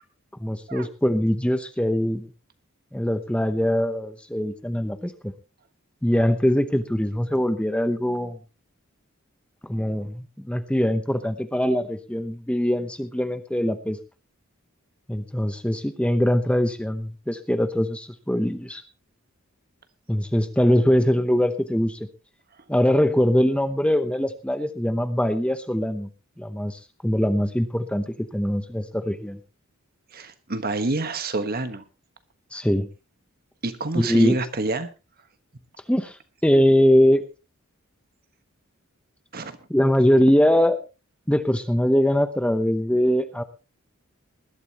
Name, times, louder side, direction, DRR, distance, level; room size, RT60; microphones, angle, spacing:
voice 1, 0.4-2.3 2.9-5.3 6.0-8.4 9.7-14.0 15.1-18.8 20.1-22.0 22.7-26.1 26.4-29.4 32.5-32.9 34.0-34.4 35.9-36.1 36.4-37.2 39.7-40.8 41.3-43.4, equal, 5° left, 10 dB, 0.8 m, -22 dB
voice 2, 30.1-31.8 33.6-34.9 39.3-39.6, right 2 dB, 45° right, 10 dB, 1.3 m, -27 dB
20.0 x 12.0 x 3.0 m, 0.29 s
head